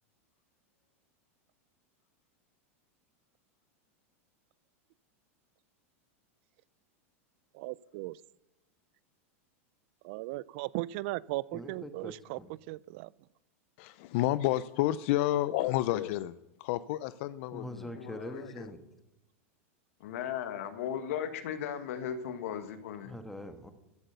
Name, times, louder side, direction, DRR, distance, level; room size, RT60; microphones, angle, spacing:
voice 1, 7.5-8.2 10.0-12.4 12.7-13.1, right 19 dB, 55° right, 22 dB, 0.4 m, -37 dB
voice 2, 11.5-12.5 17.5-18.8 23.0-23.7, left 1 dB, 5° left, 7 dB, 1.4 m, -43 dB
voice 3, 13.8-16.3 16.6-18.2, left 14 dB, 60° left, 16 dB, 0.4 m, -30 dB
voice 4, 20.0-23.1, left 9 dB, 75° left, 10 dB, 1.5 m, -36 dB
14.0 x 8.1 x 6.7 m, 0.93 s
supercardioid pair, 135°, 8 cm